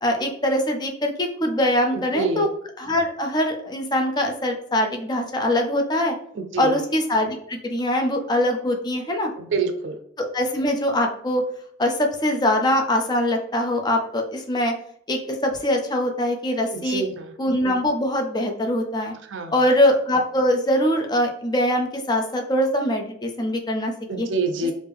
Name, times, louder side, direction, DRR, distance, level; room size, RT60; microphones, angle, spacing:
voice 1, 0.0-2.5 2.8-6.1 6.6-9.3 10.3-11.4 11.8-14.7 15.1-17.0 17.4-19.1 19.5-23.9 24.2-24.3, left 1 dB, 20° left, 3 dB, 0.5 m, -22 dB
voice 2, 1.9-2.5 6.3-6.8 9.4-9.9 16.7-17.3 19.2-19.6 24.1-24.7, right 3 dB, 75° right, 7 dB, 0.4 m, -27 dB
3.5 x 2.5 x 3.4 m, 0.66 s
head